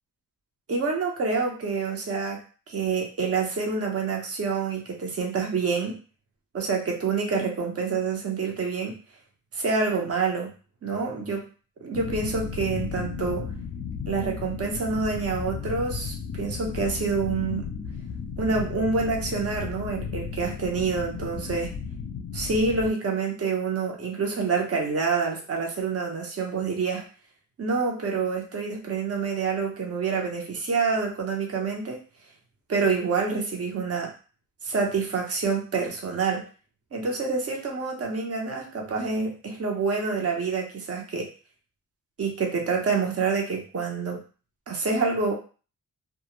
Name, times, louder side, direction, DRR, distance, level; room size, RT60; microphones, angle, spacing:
voice 1, 0.7-2.4 2.7-5.9 6.5-8.9 9.5-10.5 10.8-11.4 11.8-13.5 14.1-17.7 18.4-21.7 22.3-27.1 27.6-32.0 32.7-34.1 34.6-36.4 36.9-41.3 42.2-44.2 44.7-45.3, right 4 dB, 40° right, 0 dB, 0.8 m, -27 dB
sound 1, 11.9-22.9, left 6 dB, 55° left, 0.5 m, -34 dB
2.3 x 2.0 x 3.0 m, 0.36 s
cardioid pair, 85°, 35 cm